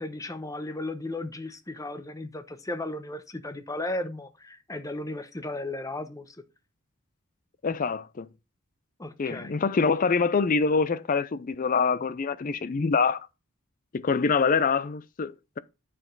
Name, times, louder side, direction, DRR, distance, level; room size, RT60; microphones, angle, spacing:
voice 1, 0.0-6.4 9.0-9.5, left 2 dB, 15° left, 0.8 m, -35 dB
voice 2, 7.6-8.3 9.2-13.3 13.9-15.6, left 5 dB, 40° left, 0.4 m, -25 dB
9.2 x 6.1 x 3.8 m
head